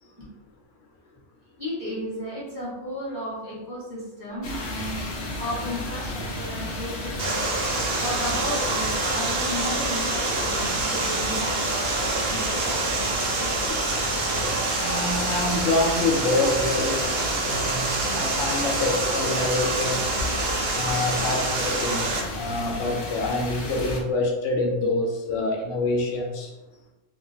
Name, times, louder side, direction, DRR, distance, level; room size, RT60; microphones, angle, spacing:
voice 1, 1.6-7.7 8.0-13.7, equal, 15° right, -10 dB, 1.3 m, -34 dB
sound 1, 4.4-24.0, left 2 dB, 55° left, 0.6 m, -33 dB
Water, 7.2-22.2, right 3 dB, 60° right, 0.8 m, -27 dB
voice 2, 14.8-17.1 17.4-20.2 20.7-22.1 22.3-26.5, left 2 dB, 75° left, 1 dB, 0.9 m, -26 dB
2.9 x 2.5 x 2.7 m, 1.0 s
omnidirectional pair, 1.3 m